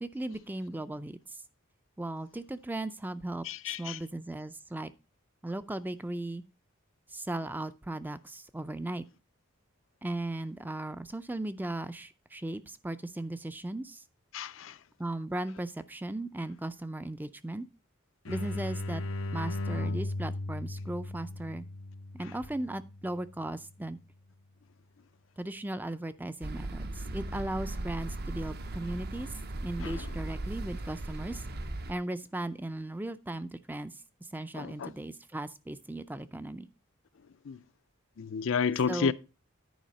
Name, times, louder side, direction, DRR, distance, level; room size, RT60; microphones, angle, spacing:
voice 1, 0.0-1.4 2.0-4.9 5.4-6.4 7.1-9.1 10.0-14.0 15.0-17.7 18.3-19.0 19.3-21.6 22.1-24.0 25.4-29.3 29.6-31.5 31.9-33.9 34.2-36.7 38.9-39.1, right 1 dB, 10° right, 0.4 m, -37 dB
voice 2, 3.5-4.0 14.3-14.7 29.8-29.9 34.6-34.9 37.5-37.6 38.2-39.1, left 6 dB, 65° left, 0.4 m, -31 dB
sound 1, 18.3-23.8, left 2 dB, 90° left, 0.9 m, -37 dB
sound 2, 26.4-31.9, right 2 dB, 50° right, 0.7 m, -37 dB
10.0 x 4.8 x 5.3 m
head